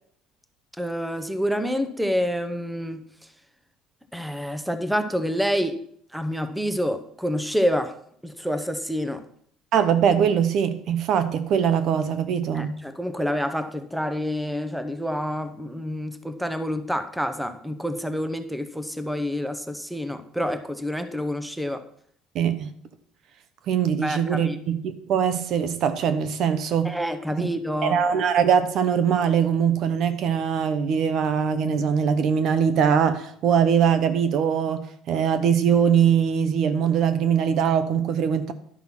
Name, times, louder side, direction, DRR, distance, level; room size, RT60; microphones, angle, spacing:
voice 1, 0.8-3.1 4.1-5.8 6.1-8.0 8.2-9.2 12.5-21.8 24.0-24.6 26.8-28.0, equal, 5° right, 0.9 m, -28 dB
voice 2, 9.7-12.7 22.3-22.7 23.7-26.9 27.4-27.5 27.8-38.5, right 7 dB, 60° right, 0.9 m, -22 dB
11.0 x 5.7 x 5.9 m
supercardioid pair, 90°, 0 cm